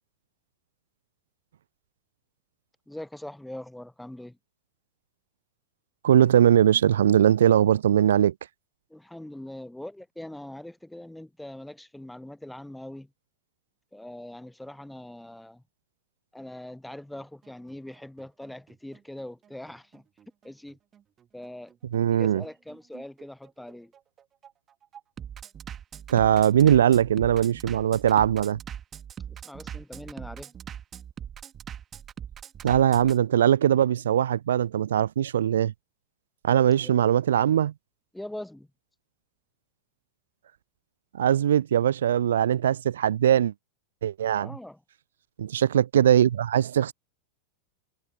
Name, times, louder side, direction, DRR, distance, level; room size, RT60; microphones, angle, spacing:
voice 1, 2.9-4.4 8.9-13.1 13.9-15.6 16.3-20.0 20.4-20.8 21.3-21.7 22.1-23.9 29.3-30.5 38.1-38.7 44.4-44.8, left 1 dB, 5° left, 0.7 m, -42 dB
voice 2, 6.0-8.3 21.9-22.4 26.1-28.6 32.6-35.7 36.4-37.7 41.1-43.5 44.0-44.5 45.4-46.9, right 10 dB, 65° right, 0.3 m, -21 dB
Bass drum, 17.2-33.2, right 9 dB, 25° right, 1.7 m, -42 dB
figure-of-eight pair, 90°, 0 cm